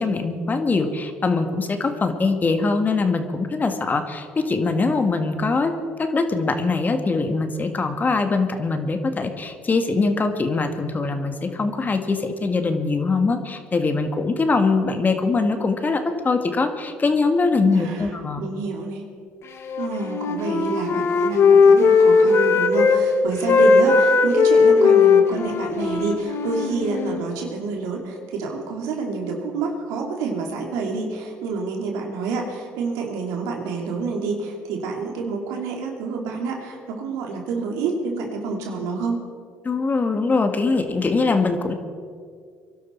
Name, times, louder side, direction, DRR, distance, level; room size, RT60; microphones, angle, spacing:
voice 1, 0.0-5.7 6.0-18.5 39.6-41.7, left 3 dB, 30° left, 7 dB, 1.7 m, -22 dB
voice 2, 17.6-19.0 19.8-39.2, right 4 dB, 80° right, 1 dB, 2.9 m, -28 dB
Wind instrument woodwind instrument, 19.6-23.0 23.3-27.2, left 4 dB, 50° left, 1.5 m, -17 dB
23.0 x 12.0 x 4.6 m, 2.1 s
supercardioid pair, 75°, 5 cm